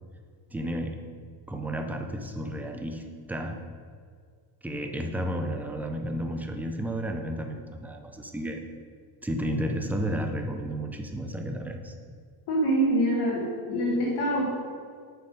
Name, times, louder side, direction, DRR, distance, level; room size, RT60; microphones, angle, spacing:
voice 1, 0.5-1.0 1.5-3.6 4.6-8.6 9.2-11.9, equal, 5° right, 4 dB, 0.5 m, -32 dB
voice 2, 12.5-14.6, right 1 dB, 60° left, -4 dB, 1.6 m, -25 dB
7.3 x 5.8 x 5.2 m, 2.1 s
cardioid pair, 135°, 44 cm